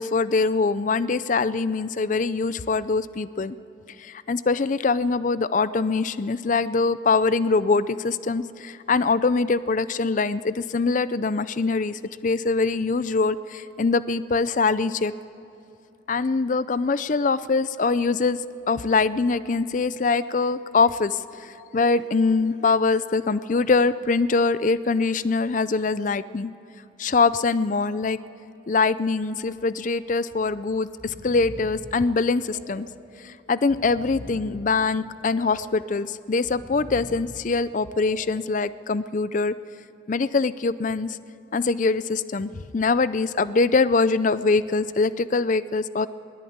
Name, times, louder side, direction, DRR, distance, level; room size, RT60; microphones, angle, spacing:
voice 1, 0.0-3.6 4.0-15.1 16.1-18.4 18.7-26.5 27.0-28.2 28.7-32.9 33.2-39.6 40.1-41.2 41.5-46.1, left 4 dB, 40° left, 16 dB, 0.4 m, -23 dB
Breathing, 28.7-29.1 29.4-29.5 30.4-30.6 30.8-31.9 32.4-33.1 33.5-34.6 35.1-35.8 36.3-37.3 37.9-38.5, equal, 10° right, 6.0 m, -43 dB
22.0 x 18.5 x 8.7 m, 2.9 s
head